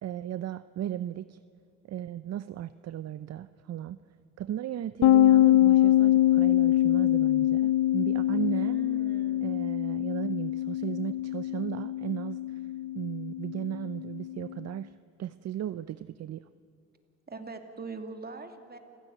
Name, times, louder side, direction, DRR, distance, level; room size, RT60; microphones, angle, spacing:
voice 1, 0.0-1.4 1.9-4.0 4.4-8.8 9.4-12.6 12.9-14.9 15.2-16.4, right 11 dB, 60° right, 14 dB, 0.6 m, -35 dB
sound 1, 5.0-14.5, left 13 dB, 85° left, 0.6 m, -24 dB
voice 2, 8.5-9.5 17.3-18.8, right 4 dB, 30° right, 6 dB, 2.6 m, -41 dB
28.5 x 16.0 x 9.3 m, 2.4 s
cardioid pair, 90°, 30 cm